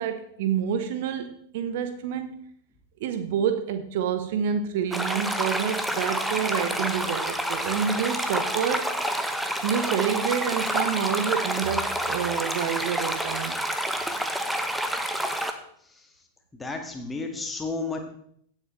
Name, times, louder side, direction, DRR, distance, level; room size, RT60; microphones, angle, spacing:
voice 1, 0.0-2.5 3.0-8.9 9.6-13.6, right 8 dB, 50° right, 10 dB, 0.8 m, -28 dB
sound 1, 4.9-15.5, right 1 dB, 5° right, 0.9 m, -28 dB
voice 2, 16.5-18.0, left 3 dB, 10° left, 3 dB, 1.9 m, -32 dB
16.5 x 7.4 x 3.2 m, 0.66 s
figure-of-eight pair, 90°, 0 cm